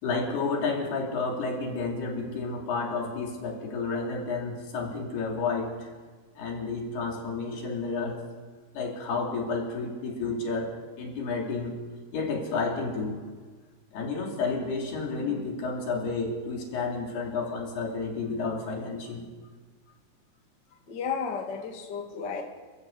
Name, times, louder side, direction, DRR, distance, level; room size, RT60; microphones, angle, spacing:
voice 1, 0.0-5.9 6.4-8.2 8.7-11.8 12.1-13.2 13.9-19.3, left 4 dB, 70° left, 0 dB, 5.5 m, -31 dB
voice 2, 20.9-22.4, left 6 dB, 35° left, 2 dB, 1.9 m, -33 dB
27.5 x 14.5 x 8.3 m, 1.4 s
omnidirectional pair, 4.9 m